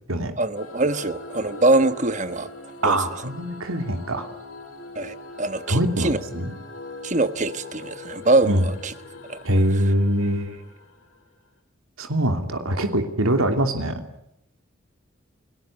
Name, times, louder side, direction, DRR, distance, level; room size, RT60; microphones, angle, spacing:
voice 1, 0.4-2.5 2.8-3.0 4.9-6.2 7.0-8.9 9.3-9.4, right 2 dB, 35° right, 11 dB, 1.3 m, -23 dB
sound 1, 0.5-11.5, left 2 dB, 75° left, 4.6 m, -41 dB
voice 2, 2.8-4.3 5.7-6.5 8.4-8.6 9.4-10.6 12.0-14.0, right 1 dB, 85° right, 5 dB, 3.1 m, -23 dB
29.5 x 18.5 x 8.8 m, 0.79 s
head